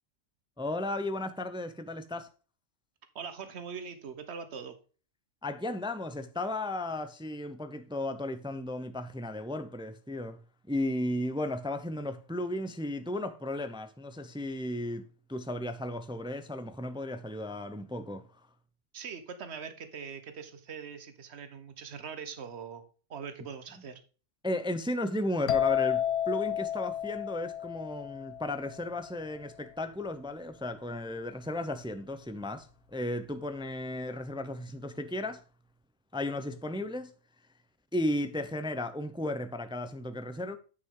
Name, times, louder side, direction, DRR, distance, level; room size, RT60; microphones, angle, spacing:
voice 1, 0.6-2.3 5.4-10.4 10.7-18.3 24.4-35.4 36.1-37.1 37.9-40.6, left 1 dB, 5° right, 0.4 m, -35 dB
voice 2, 3.1-4.8 18.9-22.8 23.1-24.0, right 6 dB, 60° right, 1.4 m, -42 dB
sound 1, 25.5-29.1, left 10 dB, 65° left, 0.8 m, -31 dB
9.7 x 5.7 x 3.8 m
omnidirectional pair, 1.3 m